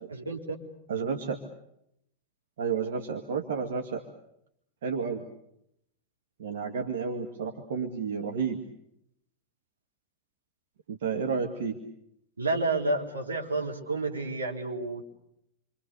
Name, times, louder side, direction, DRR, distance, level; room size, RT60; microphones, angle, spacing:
voice 1, 0.3-0.6 12.4-15.0, right 2 dB, 75° right, 0 dB, 3.8 m, -30 dB
voice 2, 0.9-1.4 2.6-4.0 4.8-5.3 6.4-8.6 10.9-11.8, right 5 dB, 60° right, 3 dB, 1.9 m, -31 dB
28.5 x 25.0 x 6.9 m, 0.79 s
figure-of-eight pair, 90°, 0 cm